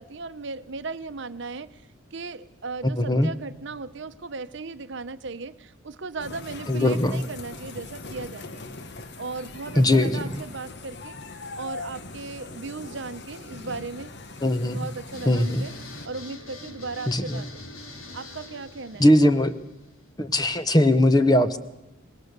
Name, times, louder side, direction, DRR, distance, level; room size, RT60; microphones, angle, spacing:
voice 1, 0.0-1.8 2.1-8.6 9.2-14.1 14.7-17.7 18.1-19.1, right 4 dB, 60° right, 11 dB, 0.8 m, -37 dB
voice 2, 3.0-3.3 6.7-7.2 9.8-10.2 14.4-14.9 15.2-15.7 17.1-17.4 19.0-19.6 20.2-21.6, left 1 dB, 20° left, 10 dB, 1.0 m, -20 dB
sound 1, 6.2-16.1, left 3 dB, 55° left, 1.2 m, -41 dB
sound 2, 15.1-20.1, left 2 dB, 90° left, 3.1 m, -44 dB
24.5 x 20.5 x 6.8 m, 1.0 s
head